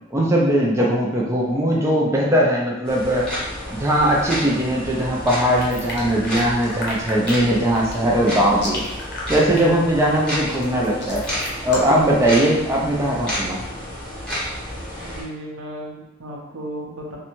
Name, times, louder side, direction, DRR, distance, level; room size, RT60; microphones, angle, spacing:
voice 1, 0.1-3.3 3.7-8.8 9.3-11.2 11.6-13.6, right 1 dB, 15° right, -3 dB, 0.3 m, -19 dB
sound 1, 2.8-15.2, equal, 5° left, 0.8 m, -31 dB
sound 2, 5.5-12.1, left 2 dB, 55° left, 0.6 m, -33 dB
voice 2, 15.0-17.2, right 1 dB, 80° right, -2 dB, 0.6 m, -34 dB
2.5 x 2.1 x 2.9 m, 0.94 s
head